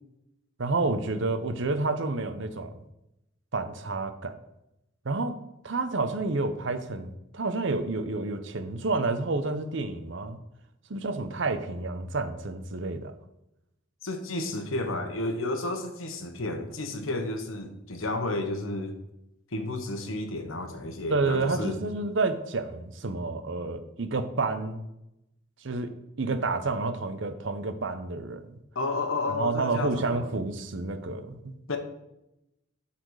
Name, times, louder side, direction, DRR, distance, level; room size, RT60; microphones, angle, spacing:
voice 1, 0.6-2.7 3.5-4.3 5.0-5.4 5.6-10.4 10.9-13.1 21.1-24.8 25.6-28.5 29.3-31.8, right 3 dB, 65° right, 9 dB, 0.8 m, -29 dB
voice 2, 14.0-18.9 19.5-21.8 28.7-30.2 31.7-31.8, left 2 dB, 90° left, 6 dB, 1.2 m, -31 dB
12.0 x 4.3 x 4.8 m, 0.89 s
head